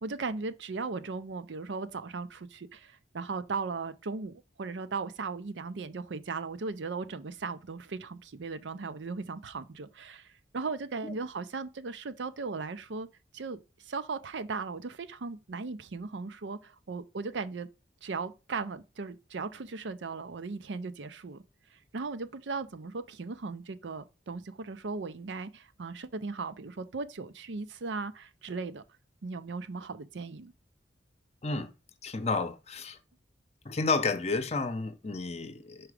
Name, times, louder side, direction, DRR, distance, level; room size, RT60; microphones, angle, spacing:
voice 1, 0.0-13.1 13.3-17.7 18.0-21.4 21.7-28.8 29.2-30.5, right 4 dB, 80° right, 0.6 m, -37 dB
voice 2, 32.0-33.0 33.6-35.9, left 3 dB, 35° left, 0.7 m, -31 dB
4.9 x 4.7 x 4.8 m
head